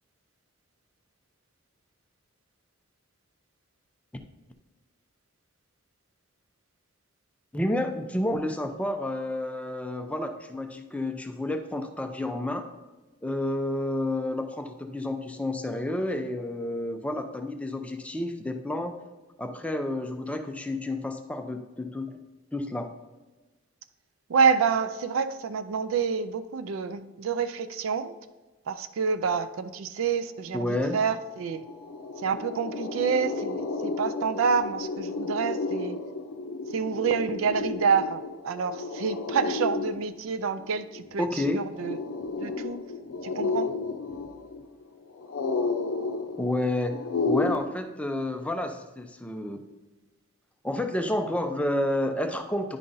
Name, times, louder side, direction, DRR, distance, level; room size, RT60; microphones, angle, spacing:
voice 1, 7.5-12.7 13.2-19.0 19.4-22.1 22.5-22.9 30.5-31.0 41.2-41.6 46.4-49.6 50.6-52.8, left 1 dB, 5° left, 5 dB, 0.4 m, -30 dB
voice 2, 24.3-28.1 28.7-31.7 32.2-36.0 36.7-41.3 41.5-42.0 42.4-42.8 43.2-43.7, right 6 dB, 70° right, 12 dB, 0.4 m, -28 dB
sound 1, 31.0-31.1 31.4-47.6, left 3 dB, 75° left, 0.5 m, -32 dB
9.7 x 5.3 x 2.6 m, 1.1 s
head